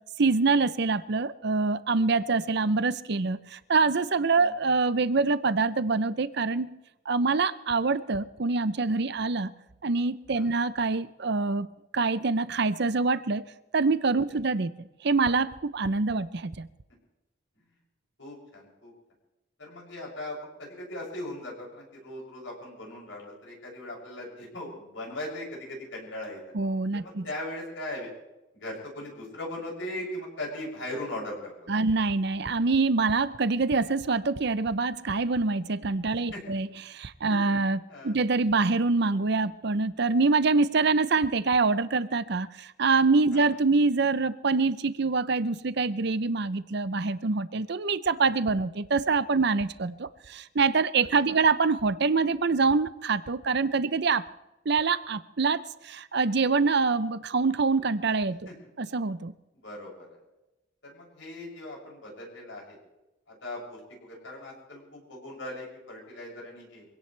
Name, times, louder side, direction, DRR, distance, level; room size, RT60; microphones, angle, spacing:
voice 1, 0.2-6.8 7.1-9.5 9.8-11.7 11.9-13.4 13.7-14.7 15.0-16.7 26.5-27.3 31.7-54.3 54.7-58.5 58.8-59.3, right 4 dB, 55° right, 14 dB, 0.7 m, -25 dB
voice 2, 18.2-18.9 19.6-26.4 26.9-28.1 28.5-31.5 36.3-36.4 37.3-37.4 37.9-38.2 43.3-43.5 51.3-51.4 58.5-58.6 59.6-60.1 60.8-62.8 63.3-66.9, left 1 dB, 70° left, -3 dB, 7.2 m, -39 dB
24.5 x 17.0 x 3.4 m, 1.0 s
head